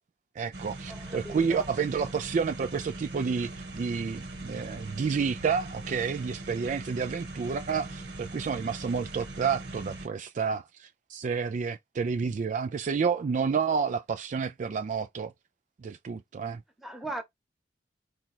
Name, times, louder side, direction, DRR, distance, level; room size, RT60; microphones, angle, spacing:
voice 1, 0.4-15.3 15.8-16.6, right 5 dB, 45° right, 0.3 m, -30 dB
sound 1, 0.5-10.1, right 2 dB, 70° right, 1.3 m, -41 dB
voice 2, 0.9-1.6 16.8-17.2, right 1 dB, ahead, 1.0 m, -38 dB
4.3 x 2.4 x 4.3 m
head